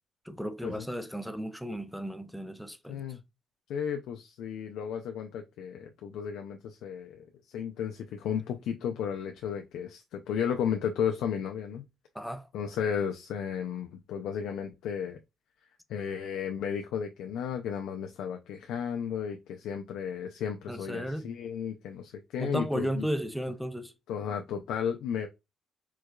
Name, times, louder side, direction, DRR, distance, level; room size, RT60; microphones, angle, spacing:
voice 1, 0.3-3.0 12.1-12.5 20.7-21.3 22.4-23.9, equal, ahead, 0.5 m, -34 dB
voice 2, 2.9-3.2 3.7-7.3 7.5-11.9 12.5-15.2 15.9-23.1 24.1-25.3, left 8 dB, 85° left, 0.3 m, -34 dB
4.5 x 2.3 x 2.2 m
cardioid pair, 90°, 0 cm